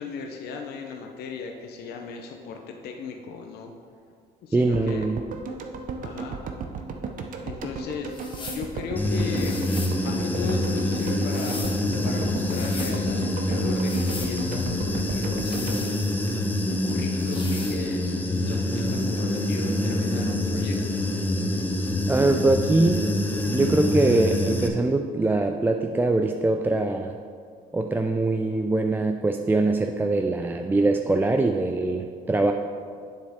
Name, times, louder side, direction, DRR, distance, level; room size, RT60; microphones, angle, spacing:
voice 1, 0.0-3.7 4.4-5.1 6.0-6.4 7.4-9.7 10.0-16.0 16.3-16.4 16.7-18.1 18.5-21.1, left 5 dB, 70° left, 3 dB, 0.8 m, -36 dB
voice 2, 4.5-5.2 22.1-23.0 23.5-27.1 27.7-32.5, right 2 dB, 10° right, 4 dB, 0.3 m, -23 dB
sound 1, 4.7-16.9 17.2-17.3, right 4 dB, 50° right, 0.8 m, -36 dB
sound 2, 8.1-8.7 9.4-10.0 11.0-11.8 12.4-13.0 13.7-14.3 15.3-16.4 17.2-17.8, left 3 dB, 25° left, 1.5 m, -39 dB
Human voice / Buzz, 9.0-24.7, left 1 dB, 10° left, 0.8 m, -26 dB
9.2 x 7.3 x 3.6 m, 2.2 s
cardioid pair, 110°, 17 cm